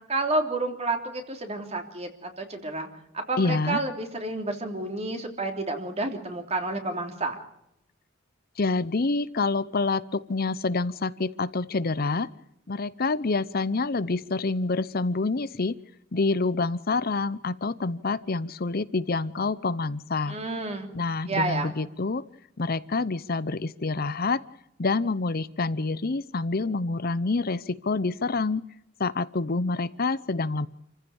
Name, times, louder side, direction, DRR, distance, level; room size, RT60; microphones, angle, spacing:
voice 1, 0.1-2.9 3.1-7.4 20.3-20.9 21.2-21.7, right 2 dB, 30° right, 4 dB, 3.2 m, -30 dB
voice 2, 3.4-3.8 8.6-12.3 12.7-15.8 16.1-20.4 20.9-22.2 22.6-24.4 24.8-28.7 29.0-30.7, left 3 dB, 45° left, 16 dB, 0.7 m, -27 dB
27.5 x 15.5 x 7.2 m, 0.81 s
head